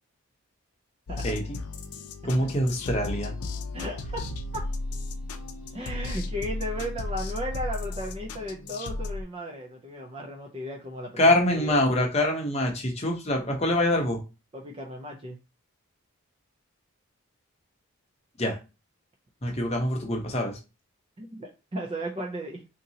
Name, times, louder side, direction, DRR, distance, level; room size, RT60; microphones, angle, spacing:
sound 1, 1.1-9.2, left 2 dB, 85° left, 0.5 m, -34 dB
voice 1, 2.2-3.3 11.2-14.2 18.4-18.6 19.4-20.5, left 1 dB, 30° left, 2 dB, 0.8 m, -24 dB
voice 2, 3.7-4.2 4.5-4.6 5.7-11.8 14.5-15.4 21.2-22.6, equal, 25° right, 1 dB, 0.4 m, -35 dB
3.8 x 2.8 x 2.7 m, 0.29 s
head